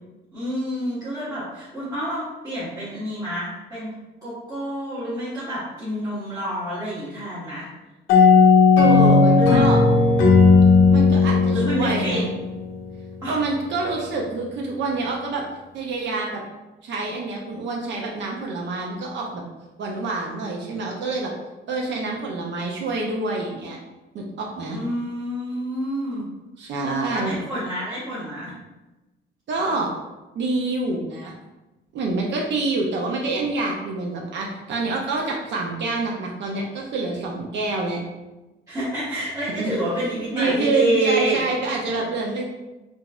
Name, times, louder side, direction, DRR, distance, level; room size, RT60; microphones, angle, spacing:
voice 1, 0.3-3.9 4.2-7.7 9.4-9.6 11.5-12.3 13.2-13.4 24.7-26.3 26.6-28.5 38.7-41.4 41.9-42.0, right 1 dB, 15° right, -11 dB, 0.9 m, -28 dB
sound 1, 8.1-12.7, left 4 dB, 75° left, 0.6 m, -15 dB
voice 2, 8.8-9.8 10.9-12.3 13.3-15.4 15.7-16.4 16.8-19.4 19.8-21.3 21.7-23.8 24.1-24.8 26.6-27.4 29.5-29.9 30.4-31.3 31.9-38.0 39.6-39.7 40.3-42.4, right 3 dB, 60° right, -1 dB, 0.5 m, -26 dB
3.8 x 2.4 x 2.3 m, 1.1 s
cardioid pair, 125°, 21 cm